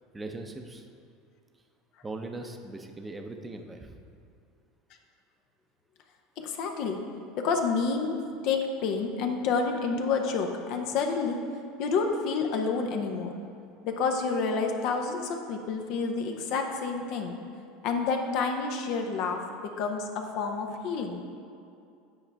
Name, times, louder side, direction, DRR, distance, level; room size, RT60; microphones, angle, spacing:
voice 1, 0.1-0.9 2.0-4.0, right 2 dB, 20° right, 5 dB, 0.7 m, -40 dB
voice 2, 6.4-7.0 7.4-8.2 8.4-11.4 11.8-13.3 13.8-17.3 17.8-21.2, left 4 dB, 60° left, 3 dB, 0.8 m, -29 dB
9.3 x 4.8 x 3.5 m, 2.5 s
hypercardioid pair, 80°, 0 cm